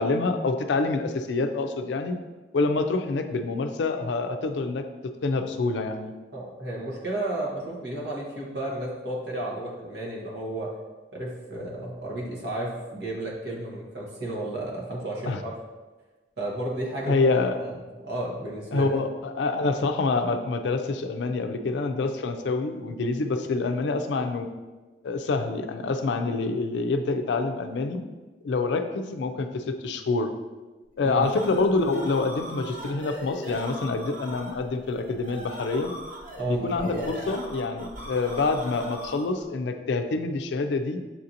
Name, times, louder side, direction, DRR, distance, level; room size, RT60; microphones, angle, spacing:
voice 1, 0.0-2.2 2.5-4.8 5.2-6.1 15.3-15.4 17.1-17.6 18.7-24.5 25.0-28.0 28.4-30.3 31.0-35.9 36.5-41.0, left 3 dB, 85° left, 7 dB, 0.4 m, -26 dB
voice 2, 6.3-10.7 11.1-15.6 16.4-17.2 17.6-17.7 18.0-18.9 31.0-31.3 36.4-37.1, right 1 dB, 70° right, -4 dB, 1.1 m, -32 dB
sound 1, 30.9-39.4, right 1 dB, 50° right, 0.8 m, -40 dB
7.3 x 2.5 x 2.8 m, 1.2 s
head